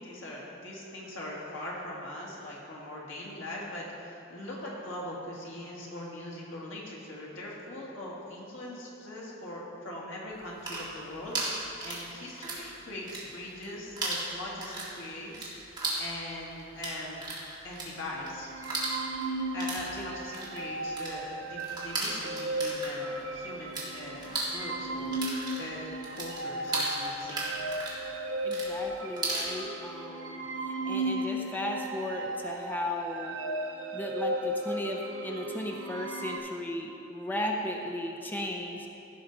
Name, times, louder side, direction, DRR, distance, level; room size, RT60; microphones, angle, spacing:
voice 1, 0.0-15.7 16.0-17.2 17.6-18.5 19.5-25.2 25.6-27.8, left 1 dB, 90° left, -4 dB, 2.1 m, -41 dB
sound 1, 10.4-12.7 13.0-13.7 14.0-23.9 24.2-29.5, right 2 dB, 25° right, 1.8 m, -36 dB
sound 2, 18.2-36.4, right 1 dB, 85° right, 0.8 m, -36 dB
voice 2, 28.4-30.5 30.8-33.4 33.9-38.9, left 1 dB, 10° left, 1 dB, 0.7 m, -35 dB
15.0 x 5.6 x 4.0 m, 2.8 s
head